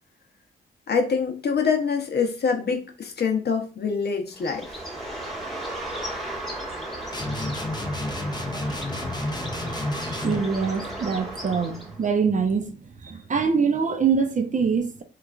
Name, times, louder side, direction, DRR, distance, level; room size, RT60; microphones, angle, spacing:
voice 1, 0.9-4.8, left 5 dB, 50° left, 0.7 m, -25 dB
Bird, 4.3-12.1, right 1 dB, ahead, 1.1 m, -35 dB
sound 1, 7.1-10.5, left 2 dB, 20° left, 0.6 m, -31 dB
voice 2, 10.2-12.7 13.0-15.0, right 5 dB, 35° right, 0.5 m, -24 dB
3.0 x 2.4 x 2.3 m
cardioid pair, 60°, 21 cm